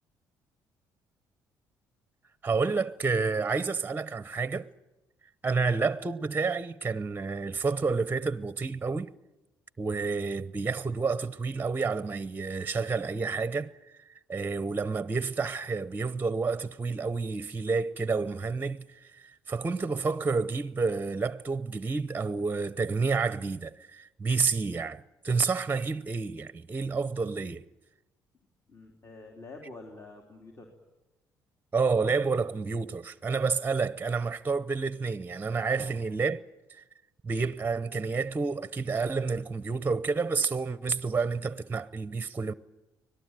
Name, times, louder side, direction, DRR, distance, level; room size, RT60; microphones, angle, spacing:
voice 1, 2.4-4.7 5.4-9.1 9.8-13.7 14.3-27.6 31.7-36.4 37.2-42.5, right 4 dB, 25° right, 0.8 m, -29 dB
voice 2, 28.7-30.7 35.7-36.0, left 2 dB, 30° left, 3.8 m, -47 dB
24.5 x 18.0 x 9.2 m
supercardioid pair, 65°, 8 cm